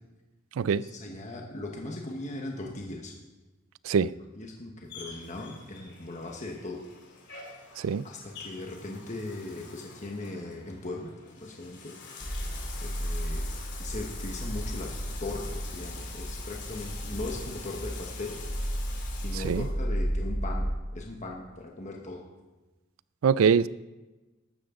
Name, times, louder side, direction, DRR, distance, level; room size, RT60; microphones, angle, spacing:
voice 1, 0.7-3.1 4.3-6.8 7.3-7.6 8.0-11.1 11.4-11.9 12.8-13.4 13.8-14.9 15.2-18.4 19.1-22.3, left 2 dB, 35° left, 1.2 m, -39 dB
Bathtub (filling or washing), 4.9-19.7, left 5 dB, 60° left, 2.6 m, -46 dB
sound 1, 12.2-20.7, equal, 5° left, 1.3 m, -33 dB
voice 2, 23.2-23.7, right 6 dB, 80° right, 0.4 m, -23 dB
14.0 x 12.5 x 3.8 m
head